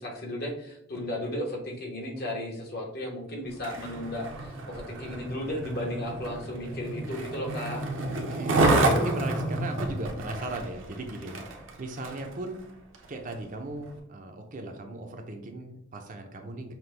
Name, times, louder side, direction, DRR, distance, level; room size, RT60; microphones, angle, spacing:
voice 1, 0.0-7.8, left 1 dB, 50° left, 0 dB, 1.1 m, -35 dB
Skateboard, 3.5-12.3 12.9-13.1, right 2 dB, 75° right, 0.7 m, -29 dB
voice 2, 8.0-11.4 11.8-12.6 13.1-16.7, right 2 dB, 40° right, 4 dB, 0.5 m, -37 dB
5.8 x 2.2 x 3.3 m, 0.76 s
head